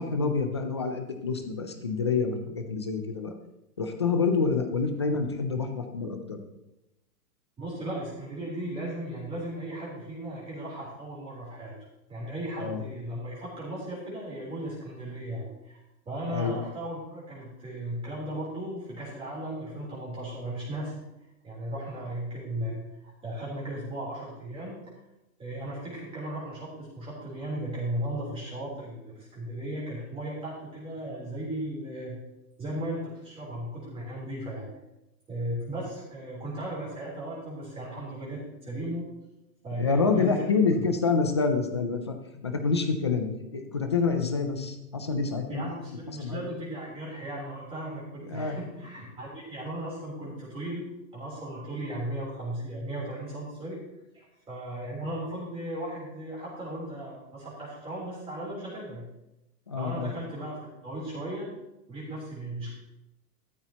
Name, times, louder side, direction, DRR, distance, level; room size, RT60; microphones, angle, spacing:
voice 1, 0.0-3.3 3.8-6.4 12.6-12.8 16.3-16.6 39.8-42.1 42.4-43.3 43.5-45.6 46.1-46.4 48.3-48.6 59.7-60.1, left 4 dB, 20° left, 6 dB, 0.3 m, -27 dB
voice 2, 7.6-11.7 12.1-20.9 21.4-22.8 23.0-24.8 25.4-32.2 32.6-34.7 35.3-39.1 39.6-40.8 45.5-53.8 54.1-59.1 59.7-61.5 61.9-62.7, right 1 dB, 10° right, -6 dB, 3.4 m, -36 dB
13.5 x 12.5 x 2.9 m, 0.91 s
hypercardioid pair, 155°, 47 cm